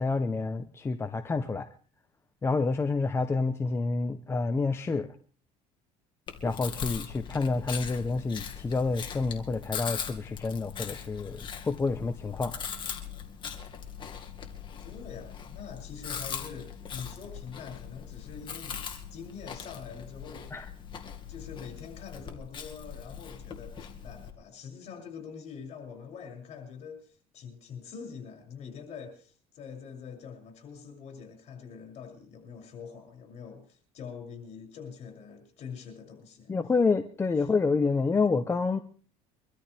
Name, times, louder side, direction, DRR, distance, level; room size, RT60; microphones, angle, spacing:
voice 1, 0.0-1.7 2.4-5.1 6.4-12.5 20.5-20.7 36.5-38.8, left 4 dB, 15° left, 7 dB, 0.8 m, -28 dB
Chewing mastication, 6.3-24.3, left 7 dB, 35° left, 2.1 m, -40 dB
voice 2, 14.8-20.7 21.3-36.6 37.4-37.5, left 6 dB, 50° left, 3 dB, 6.9 m, -44 dB
24.0 x 13.0 x 3.4 m, 0.42 s
cardioid pair, 130°, 15 cm